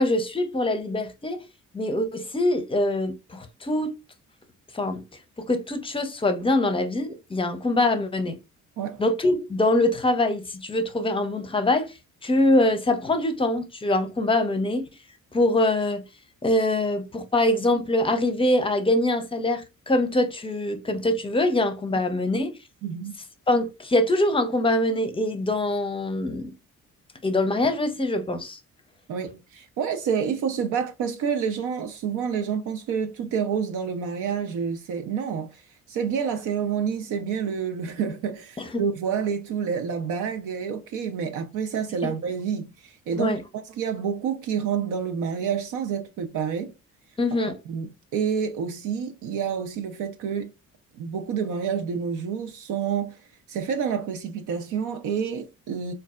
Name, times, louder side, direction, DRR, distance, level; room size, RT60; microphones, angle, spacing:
voice 1, 0.0-1.5 1.7-4.0 4.7-5.0 5.4-8.4 9.0-11.9 12.2-14.9 15.3-16.0 16.4-22.6 23.5-26.5 27.2-28.6 38.6-38.8 42.0-42.1 43.1-43.4 47.2-47.6, left 1 dB, 20° left, 0.5 m, -24 dB
voice 2, 22.8-23.2 29.1-35.6 35.9-43.4 43.8-46.7 47.3-50.5 50.9-53.2 53.5-55.9, right 7 dB, 80° right, 0.6 m, -28 dB
3.9 x 2.3 x 2.3 m
cardioid pair, 90°, 30 cm